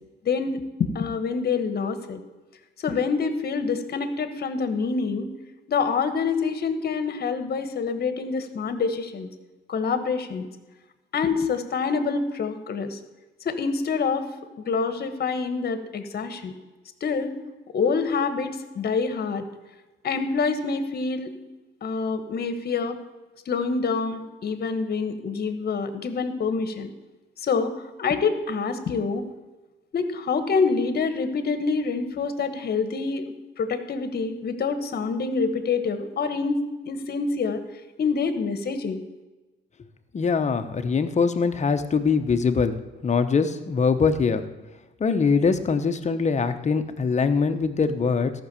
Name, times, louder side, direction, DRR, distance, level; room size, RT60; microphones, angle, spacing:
voice 1, 0.2-2.2 2.8-5.3 5.7-9.3 9.7-10.5 11.1-13.0 13.4-14.3 14.6-16.5 17.0-17.3 17.7-19.5 20.0-21.4 21.8-23.0 23.5-26.9 27.4-29.2 29.9-33.2 33.6-37.6 38.0-39.0, left 5 dB, 50° left, 10 dB, 1.3 m, -26 dB
voice 2, 40.1-42.8 43.0-44.4 45.0-48.3, left 5 dB, 35° left, 8 dB, 1.0 m, -22 dB
13.5 x 6.1 x 6.9 m, 1.2 s
cardioid pair, 90°, 20 cm